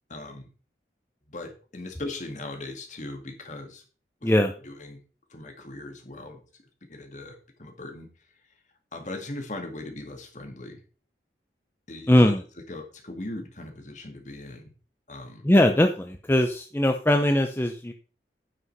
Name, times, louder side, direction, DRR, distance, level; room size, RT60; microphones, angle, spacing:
voice 1, 0.1-0.5 1.3-3.8 4.2-4.3 4.6-5.0 5.3-6.4 6.9-8.1 8.9-10.8 11.9-12.3 12.7-14.7 15.1-15.5, left 2 dB, 45° left, 4 dB, 2.0 m, -39 dB
voice 2, 12.1-12.4 15.4-17.9, left 1 dB, 15° left, 5 dB, 0.6 m, -20 dB
9.6 x 5.5 x 5.5 m, 0.37 s
head